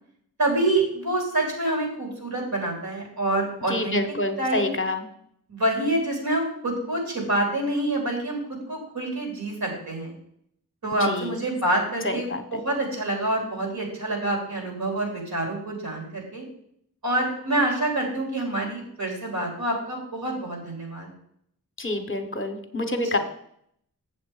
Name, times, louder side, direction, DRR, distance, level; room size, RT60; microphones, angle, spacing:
voice 1, 0.4-4.0 4.4-4.8 5.5-10.1 10.8-16.4 17.0-21.1, right 1 dB, 75° right, 0 dB, 3.5 m, -27 dB
voice 2, 3.7-5.0 11.0-11.3 12.0-12.4 21.8-23.2, left 2 dB, 35° left, 7 dB, 0.9 m, -27 dB
7.6 x 7.3 x 4.9 m, 0.70 s
wide cardioid pair, 100°, 37 cm